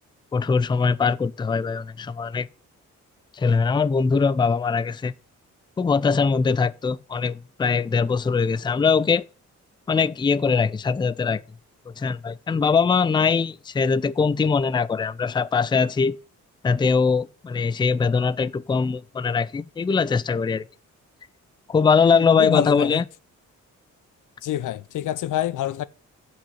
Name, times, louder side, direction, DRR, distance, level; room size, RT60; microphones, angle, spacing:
voice 1, 0.3-2.5 3.3-5.1 5.8-9.2 9.9-11.4 11.9-16.2 16.6-20.6 21.7-23.0, left 5 dB, 15° left, 0.4 m, -22 dB
voice 2, 22.1-23.0 24.4-25.8, left 12 dB, 85° left, 0.7 m, -27 dB
7.9 x 6.3 x 8.0 m
wide cardioid pair, 140°, 30 cm